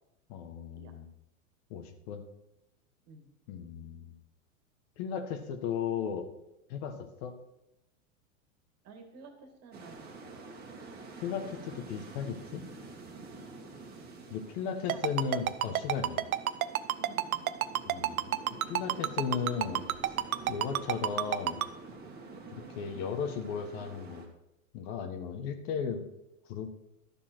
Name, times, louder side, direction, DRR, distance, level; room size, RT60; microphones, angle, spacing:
voice 1, 0.3-1.1 1.7-2.2 3.5-4.1 5.0-6.3 6.7-7.3 11.2-12.6 14.3-16.2 17.9-18.3 18.7-20.2 20.5-21.6 22.5-24.2 24.7-26.1 26.5-26.7, left 7 dB, 50° left, 7 dB, 1.4 m, -36 dB
voice 2, 8.8-10.4 14.9-15.1 17.0-17.4 22.3-22.5, right 4 dB, 40° right, 5 dB, 2.2 m, -52 dB
sound 1, 9.7-24.3, right 3 dB, 25° right, 1.9 m, -48 dB
Ringtone, 14.9-21.7, right 12 dB, 90° right, 0.7 m, -28 dB
12.0 x 6.9 x 4.5 m, 0.88 s
hypercardioid pair, 120°, 41 cm